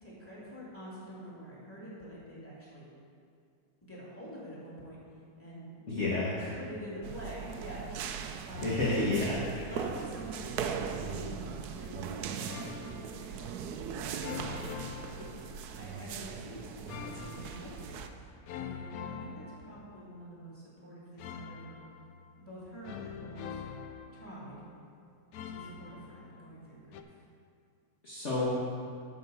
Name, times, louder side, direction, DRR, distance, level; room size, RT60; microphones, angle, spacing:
voice 1, 0.0-2.9 3.8-5.0 5.4-5.8 6.1-11.5 11.7-12.3 12.7-13.4 14.1-14.4 15.0-15.3 15.8-18.3 18.6-21.8 22.4-23.6 24.1-24.6 25.4-27.2, equal, 5° left, -9 dB, 2.8 m, -46 dB
voice 2, 5.9-6.6 8.5-9.4 28.0-28.5, left 2 dB, 45° left, -8 dB, 1.6 m, -30 dB
sound 1, 7.0-18.1, right 7 dB, 70° right, 1.0 m, -39 dB
sound 2, 12.5-13.3 14.2-15.9 16.9-17.9 18.5-20.2 21.2-22.4 22.8-24.7 25.3-26.6 26.9-27.0, left 7 dB, 70° left, 0.9 m, -44 dB
11.0 x 4.7 x 7.1 m, 2.3 s
omnidirectional pair, 1.9 m